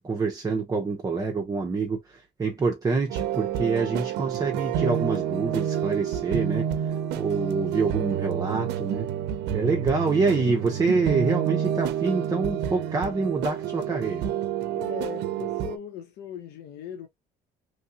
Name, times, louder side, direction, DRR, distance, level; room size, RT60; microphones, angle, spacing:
voice 1, 0.0-9.1 9.5-14.3, right 4 dB, 20° right, 0.6 m, -26 dB
sound 1, 3.1-15.8, right 9 dB, 85° right, 0.5 m, -29 dB
voice 2, 14.7-17.1, left 10 dB, 75° left, 0.7 m, -39 dB
3.0 x 2.6 x 2.4 m
cardioid pair, 110°, 17 cm